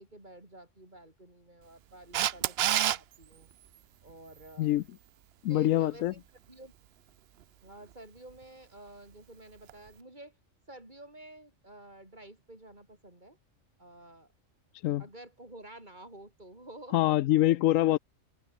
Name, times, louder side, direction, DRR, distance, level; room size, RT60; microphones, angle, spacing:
voice 1, 0.0-3.5 4.0-4.8 5.5-6.2 6.5-6.7 7.6-10.4 10.7-13.4 13.8-14.3 15.0-17.2 17.5-17.6, right 1 dB, 35° right, 5.5 m, -50 dB
Camera, 2.1-3.0 9.7-9.8, right 11 dB, 60° right, 0.8 m, -26 dB
voice 2, 5.4-6.1 14.8-15.0 16.9-18.0, left 14 dB, 90° left, 1.0 m, -24 dB
omnidirectional pair, 1.3 m